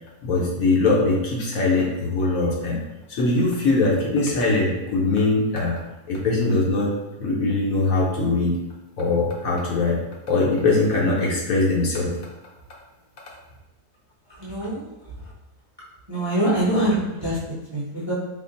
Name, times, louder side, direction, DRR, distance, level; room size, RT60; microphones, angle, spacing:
voice 1, 0.2-2.8 3.1-5.8 6.1-6.9 7.2-8.6 9.0-10.0 10.3-12.1, left 3 dB, 65° left, -3 dB, 1.1 m, -21 dB
voice 2, 14.4-14.8 16.1-17.4 17.7-18.1, right 1 dB, 20° right, -9 dB, 0.8 m, -24 dB
3.5 x 2.0 x 3.9 m, 1.1 s
omnidirectional pair, 1.6 m